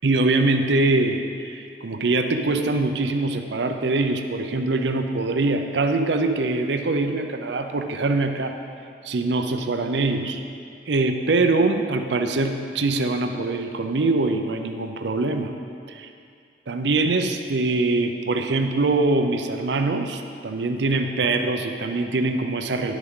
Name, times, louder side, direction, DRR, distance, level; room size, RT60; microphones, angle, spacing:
voice 1, 0.0-8.5 9.0-10.4 10.9-15.5 15.9-16.1 16.7-22.9, right 2 dB, 80° right, 6 dB, 0.6 m, -23 dB
10.5 x 8.1 x 3.8 m, 2.3 s
head